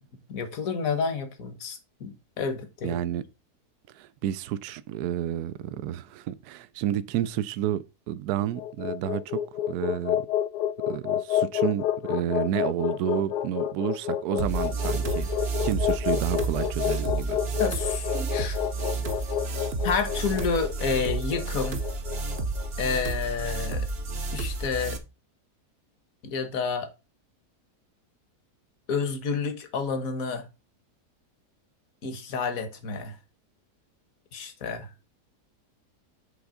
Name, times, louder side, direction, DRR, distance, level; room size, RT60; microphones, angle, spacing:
voice 1, 0.3-3.0 17.6-18.6 19.8-21.8 22.8-23.9 24.3-25.0 26.2-26.9 28.9-30.5 32.0-33.2 34.3-34.9, left 5 dB, 60° left, 1.5 m, -29 dB
voice 2, 2.8-3.2 3.9-9.4 9.7-10.2 10.9-17.4, right 12 dB, 75° right, 1.1 m, -30 dB
sound 1, 8.4-22.7, left 11 dB, 75° left, 1.1 m, -29 dB
sound 2, 14.4-25.0, right 3 dB, 45° right, 1.0 m, -31 dB
8.0 x 3.5 x 4.8 m
omnidirectional pair, 1.7 m